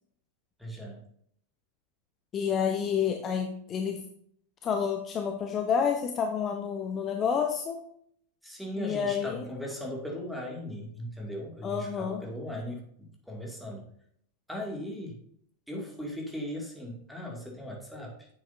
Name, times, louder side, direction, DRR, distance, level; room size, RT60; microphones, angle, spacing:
voice 1, 0.6-1.0 8.4-13.9 14.5-15.2 15.7-18.3, equal, ahead, -1 dB, 2.4 m, -38 dB
voice 2, 2.3-4.0 4.6-7.8 8.8-9.5 11.6-12.2, left 7 dB, 25° left, 4 dB, 0.8 m, -29 dB
9.6 x 7.5 x 2.7 m, 0.66 s
figure-of-eight pair, 90°, 0 cm